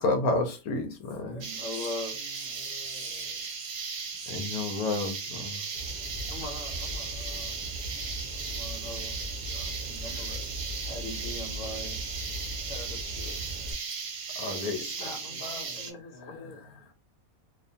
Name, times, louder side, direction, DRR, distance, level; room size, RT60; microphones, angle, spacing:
voice 1, 0.0-1.4 4.3-5.6 14.4-14.8 16.3-16.7, left 2 dB, 85° left, 1.1 m, -30 dB
voice 2, 1.2-2.1 6.3-7.6 8.3-10.4 10.8-12.0 12.7-13.4 14.5-16.6, left 2 dB, 65° left, 1.1 m, -42 dB
sound 1, 1.4-15.9, right 5 dB, 75° right, 0.9 m, -37 dB
voice 3, 2.1-3.5 5.3-5.8 14.4-16.9, left 1 dB, 45° left, 0.7 m, -53 dB
Fire, 5.7-13.7, equal, 40° right, 0.8 m, -39 dB
2.6 x 2.1 x 2.7 m
omnidirectional pair, 1.5 m